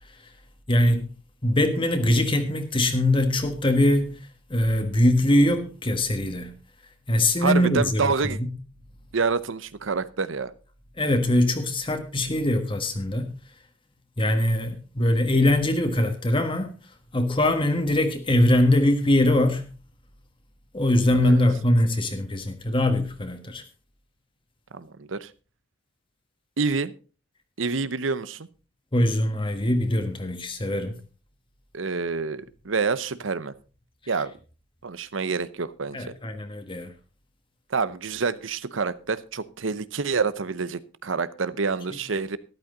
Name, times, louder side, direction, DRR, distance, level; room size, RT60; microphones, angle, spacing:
voice 1, 0.7-1.1 1.4-4.2 4.5-6.5 7.1-8.1 11.0-13.3 14.2-16.7 17.1-19.7 20.7-23.6 28.9-30.9 35.9-36.9, left 1 dB, 25° left, 1.6 m, -22 dB
voice 2, 7.4-8.4 9.1-10.5 21.2-21.4 24.7-25.3 26.6-26.9 27.6-28.5 31.7-33.5 34.1-34.3 34.8-36.1 37.7-42.4, right 4 dB, 90° right, 0.8 m, -27 dB
13.5 x 12.0 x 3.9 m
head